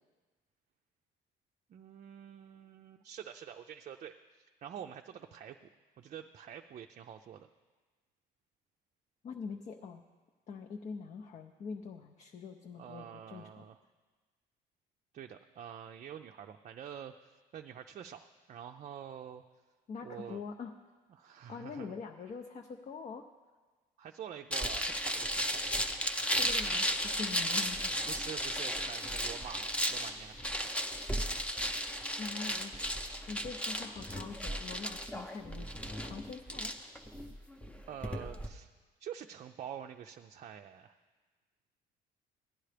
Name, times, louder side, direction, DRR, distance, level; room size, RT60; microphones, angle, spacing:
voice 1, 1.7-5.6 6.0-7.5 12.8-13.7 15.1-18.2 18.5-19.4 20.0-20.4 21.1-22.0 24.0-25.6 28.1-30.7 37.9-38.7 39.0-40.9, right 9 dB, 45° right, 4 dB, 0.4 m, -47 dB
voice 2, 9.2-10.0 10.5-13.6 19.9-20.7 21.5-23.3 26.4-27.9 32.2-32.9 33.3-36.7, left 5 dB, 45° left, 4 dB, 0.6 m, -44 dB
sound 1, 24.5-38.5, equal, 5° left, 0.7 m, -35 dB
16.5 x 10.0 x 3.4 m, 1.4 s
cardioid pair, 110°, 17 cm